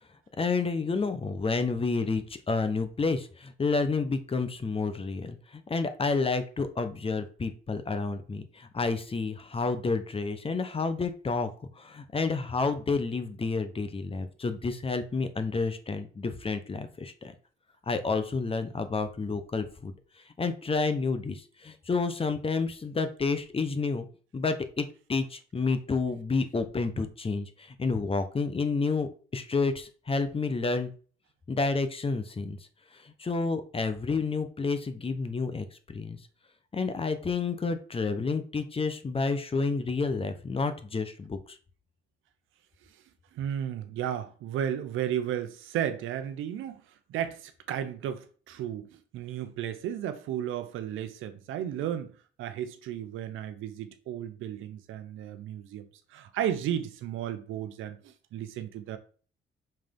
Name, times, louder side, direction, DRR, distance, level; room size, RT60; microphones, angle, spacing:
voice 1, 0.4-11.5 11.8-17.3 17.9-19.9 20.4-24.1 24.3-30.9 31.5-32.6 33.0-36.2 36.7-41.4, left 4 dB, 30° left, 1.0 m, -30 dB
voice 2, 43.3-52.1 52.4-59.0, right 10 dB, 85° right, 0.9 m, -34 dB
5.7 x 3.5 x 5.2 m
cardioid pair, 90°, 20 cm